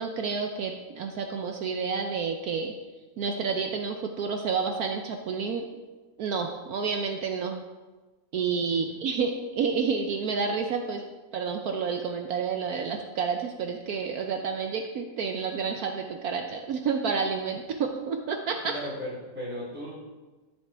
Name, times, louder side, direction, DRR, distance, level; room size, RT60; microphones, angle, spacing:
voice 1, 0.0-2.7 3.2-5.6 6.2-7.6 8.3-11.0 11.3-18.7, right 5 dB, 65° right, 4 dB, 1.1 m, -29 dB
voice 2, 18.6-20.0, equal, 5° right, -9 dB, 3.0 m, -36 dB
13.5 x 5.7 x 3.4 m, 1.2 s
omnidirectional pair, 1.8 m